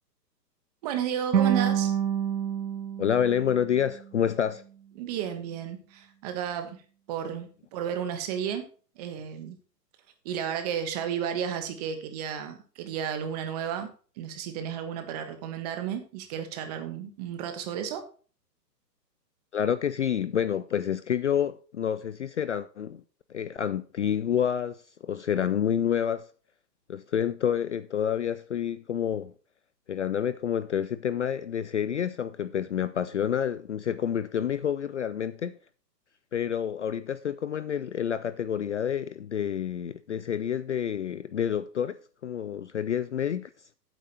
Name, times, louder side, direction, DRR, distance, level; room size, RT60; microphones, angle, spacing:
voice 1, 0.8-1.9 5.0-6.8 7.1-8.7 8.9-9.6 10.2-13.9 14.2-18.0, right 8 dB, 25° right, 1.3 m, -33 dB
sound 1, 1.3-4.4, right 9 dB, 85° right, 1.1 m, -28 dB
voice 2, 3.0-4.6 19.5-23.0 23.3-26.3 26.9-29.3 29.9-35.5 36.3-42.0 42.2-43.5, left 9 dB, 45° left, 0.5 m, -28 dB
8.9 x 8.1 x 4.1 m
hypercardioid pair, 155°, 50 cm